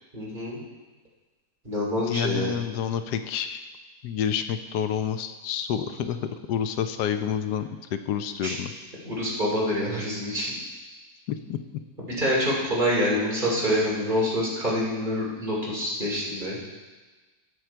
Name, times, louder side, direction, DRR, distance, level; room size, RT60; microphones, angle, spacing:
voice 1, 0.1-0.6 1.6-2.5 8.4-8.5 9.0-10.6 12.0-16.6, equal, 30° right, -5 dB, 3.1 m, -26 dB
voice 2, 2.0-3.6 4.0-6.2 6.5-8.7 11.3-11.6, left 8 dB, 85° left, 9 dB, 1.3 m, -29 dB
16.0 x 6.3 x 4.5 m, 1.3 s
omnidirectional pair, 1.7 m